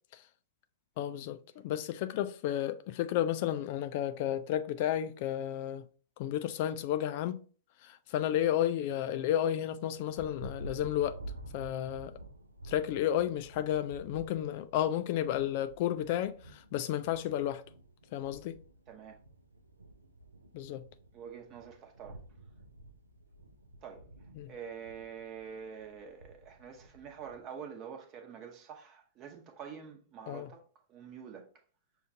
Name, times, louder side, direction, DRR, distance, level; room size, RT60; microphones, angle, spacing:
voice 1, 1.0-5.9 6.2-7.4 7.8-11.2 11.5-12.1 12.7-17.6 18.1-18.6 20.5-20.8 24.4-24.5 30.3-30.5, left 11 dB, 45° left, 0.3 m, -32 dB
Thunder, 9.9-27.4, right 2 dB, 85° right, 0.4 m, -51 dB
voice 2, 18.9-19.2 21.1-22.2 23.8-30.6 30.9-31.5, right 7 dB, 35° right, 0.9 m, -46 dB
6.3 x 2.4 x 2.7 m
figure-of-eight pair, 105°, 0 cm